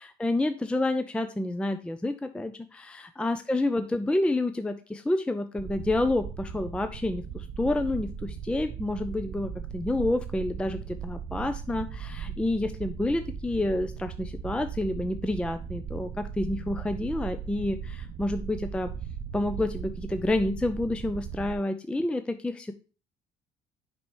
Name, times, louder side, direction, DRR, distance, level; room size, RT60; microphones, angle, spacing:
voice 1, 0.0-18.9 19.3-22.7, left 2 dB, 5° left, 9 dB, 0.4 m, -29 dB
sound 1, 5.6-21.6, right 7 dB, 45° right, 0.6 m, -38 dB
6.6 x 5.4 x 3.0 m, 0.35 s
cardioid pair, 110°, 17 cm